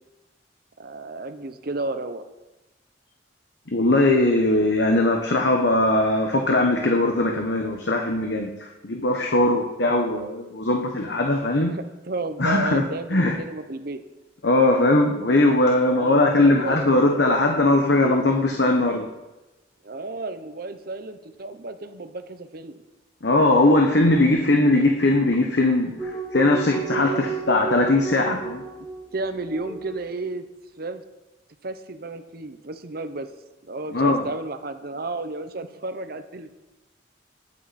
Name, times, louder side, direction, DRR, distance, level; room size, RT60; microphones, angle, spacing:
voice 1, 0.8-2.3 11.7-14.0 15.9-17.2 19.8-22.8 26.9-27.3 28.8-30.5 30.8-31.0 31.6-33.3 33.6-36.5, right 2 dB, 55° right, 9 dB, 0.9 m, -33 dB
voice 2, 3.7-11.7 12.4-12.8 13.1-13.3 14.4-19.1 23.2-28.6 33.9-34.2, left 2 dB, 65° left, 2 dB, 1.2 m, -20 dB
sound 1, 26.0-30.1, right 6 dB, 15° left, 1.4 m, -32 dB
19.5 x 8.5 x 4.3 m, 1.0 s
head